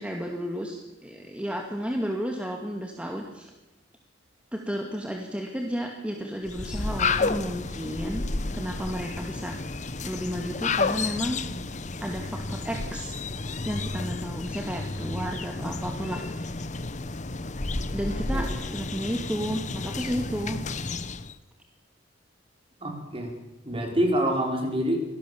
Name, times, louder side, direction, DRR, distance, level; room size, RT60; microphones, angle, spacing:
voice 1, 0.0-3.5 4.5-8.2 8.5-9.6 10.0-11.4 12.0-13.2 13.6-16.6 17.9-20.6, equal, 5° right, 2 dB, 2.2 m, -32 dB
sound 1, 6.4-21.3, left 3 dB, 40° left, 1.1 m, -31 dB
voice 2, 22.8-23.3 23.6-25.0, right 1 dB, 30° right, 2 dB, 5.4 m, -26 dB
25.5 x 18.0 x 7.2 m, 1.0 s
head